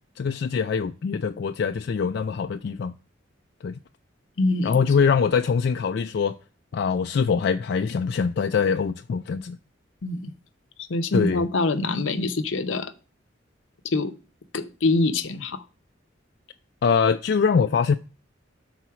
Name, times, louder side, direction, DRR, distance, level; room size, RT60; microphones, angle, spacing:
voice 1, 0.2-2.9 3.6-3.8 4.6-6.4 6.7-9.6 11.1-11.4 16.8-17.9, left 6 dB, 55° left, 0.3 m, -23 dB
voice 2, 4.4-4.8 10.0-10.3 10.9-12.9 13.8-14.1 14.5-15.6, left 2 dB, 80° left, 0.7 m, -24 dB
6.2 x 4.0 x 5.7 m
head